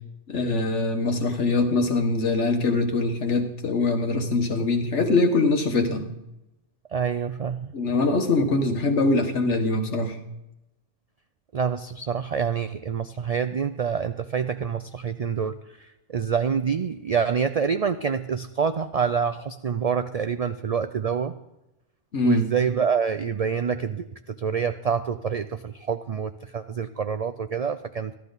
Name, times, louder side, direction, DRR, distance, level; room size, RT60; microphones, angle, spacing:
voice 1, 0.3-6.1 7.7-10.2 22.1-22.5, left 3 dB, 70° left, 4 dB, 1.6 m, -23 dB
voice 2, 6.9-7.7 11.5-21.3 22.2-28.1, right 6 dB, 65° right, 10 dB, 0.3 m, -27 dB
14.5 x 12.0 x 4.0 m, 0.93 s
omnidirectional pair, 1.2 m